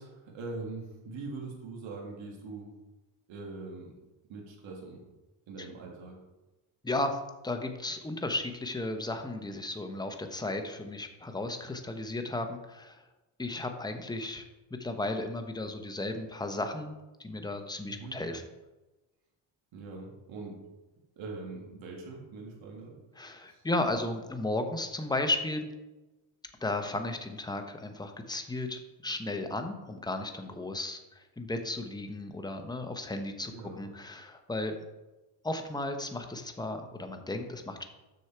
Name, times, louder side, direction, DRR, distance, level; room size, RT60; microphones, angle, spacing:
voice 1, 0.0-2.7 3.3-3.9 4.3-5.0 5.5-6.2 17.9-18.2 19.7-20.6 21.2-23.6 33.5-33.8, right 3 dB, 75° right, 0 dB, 2.1 m, -42 dB
voice 2, 6.8-13.0 13.4-14.4 14.8-18.4 23.2-25.7 26.6-33.5 33.8-34.7 35.4-37.8, left 2 dB, 10° left, 6 dB, 0.8 m, -34 dB
6.6 x 6.3 x 4.5 m, 1.1 s
cardioid pair, 105°, 47 cm